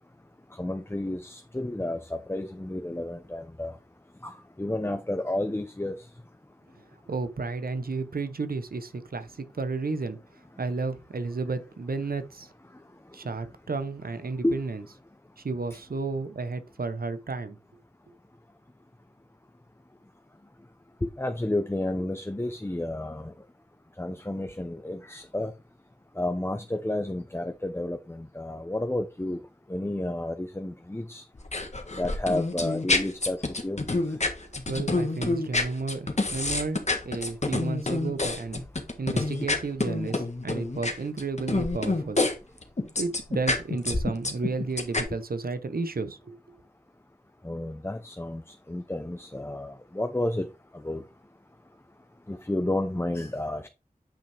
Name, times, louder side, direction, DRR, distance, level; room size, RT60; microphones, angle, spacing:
voice 1, 0.6-3.7 4.2-6.0 14.4-14.5 15.7-15.8 21.2-23.3 24.0-25.5 26.2-29.4 29.7-31.2 31.9-33.8 39.3-39.5 47.4-48.4 48.7-50.5 50.8-51.0 52.3-53.7, left 1 dB, 15° left, 0.8 m, -31 dB
voice 2, 7.1-10.2 10.6-12.5 13.1-14.8 15.4-17.6 34.4-38.6 39.0-42.2 43.0-46.4, right 3 dB, 85° right, 0.9 m, -32 dB
sound 1, 31.4-42.4 42.6-45.0, left 2 dB, 50° left, 1.6 m, -27 dB
8.9 x 5.5 x 3.4 m
wide cardioid pair, 45°, 15 cm